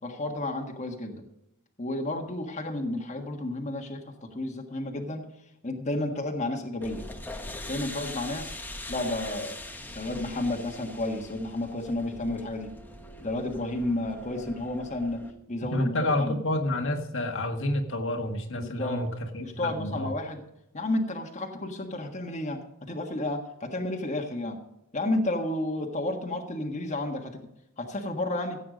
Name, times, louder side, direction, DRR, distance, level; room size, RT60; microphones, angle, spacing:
voice 1, 0.0-1.3 1.8-5.2 5.6-7.0 7.7-8.6 8.9-9.5 9.9-12.7 13.2-16.4 18.5-19.0 19.4-20.4 20.7-24.6 24.9-27.5 27.8-28.6, left 1 dB, 30° left, 2 dB, 1.5 m, -31 dB
sound 1, 6.8-15.3, left 1 dB, 10° left, 1.2 m, -42 dB
voice 2, 15.7-20.1, left 1 dB, 60° left, 4 dB, 1.7 m, -29 dB
16.0 x 8.4 x 5.2 m, 0.85 s
head